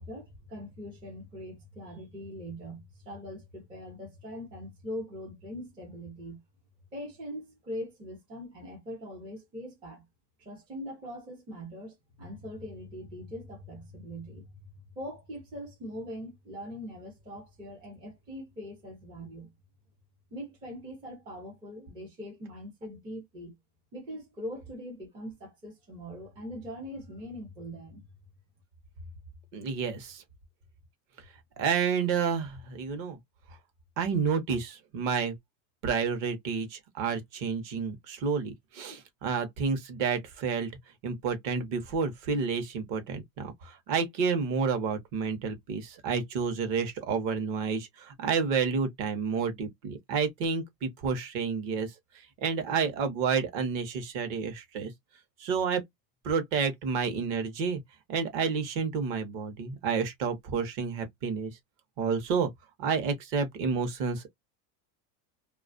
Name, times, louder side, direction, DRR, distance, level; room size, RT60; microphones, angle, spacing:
voice 1, 0.0-6.4 6.9-10.0 10.4-19.5 20.3-23.6 23.9-28.1, equal, 10° right, 0.3 m, -42 dB
voice 2, 29.5-30.2 31.6-33.2 34.0-35.3 35.8-40.7 41.0-51.9 52.4-54.9 55.4-55.8 56.2-57.8 58.1-61.5 62.0-62.5 62.8-64.3, right 5 dB, 45° right, 0.8 m, -30 dB
2.4 x 2.3 x 2.4 m
supercardioid pair, 160°, 48 cm